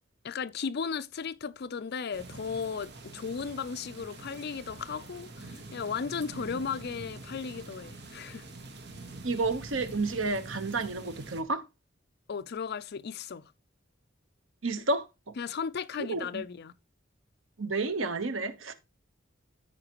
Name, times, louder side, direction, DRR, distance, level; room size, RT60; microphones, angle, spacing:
voice 1, 0.2-8.4 12.3-13.4 15.4-16.7, left 6 dB, 55° left, 0.5 m, -35 dB
sound 1, 2.1-11.4, right 2 dB, 60° right, 1.5 m, -45 dB
voice 2, 9.2-11.6 14.6-15.1 16.0-16.4 17.6-18.7, right 3 dB, 80° right, 1.1 m, -30 dB
14.0 x 4.8 x 3.0 m
head